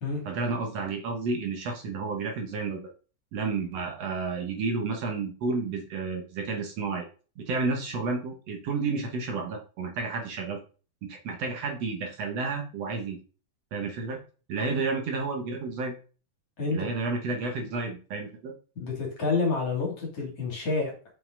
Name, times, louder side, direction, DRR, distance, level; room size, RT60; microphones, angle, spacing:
voice 1, 0.2-2.8 3.3-7.1 7.4-10.6 11.0-13.2 13.7-14.2 14.5-15.9 16.7-18.5, right 4 dB, 60° right, 2 dB, 2.2 m, -31 dB
voice 2, 16.6-16.9 18.8-21.1, left 4 dB, 50° left, -1 dB, 3.6 m, -29 dB
7.4 x 5.7 x 3.9 m, 0.36 s
omnidirectional pair, 3.4 m